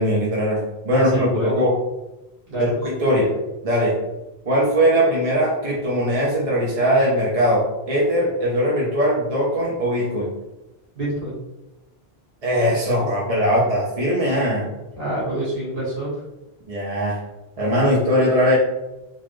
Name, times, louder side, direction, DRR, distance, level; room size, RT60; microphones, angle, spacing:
voice 1, 0.0-1.8 2.6-3.3 3.6-4.0 4.5-10.3 12.4-14.7 16.7-17.2 17.6-18.5, equal, 40° right, -5 dB, 0.8 m, -20 dB
voice 2, 0.9-1.6 2.5-2.7 11.0-11.4 15.0-16.1, right 1 dB, 60° right, -7 dB, 1.9 m, -26 dB
3.9 x 2.5 x 3.2 m, 0.99 s
omnidirectional pair, 1.1 m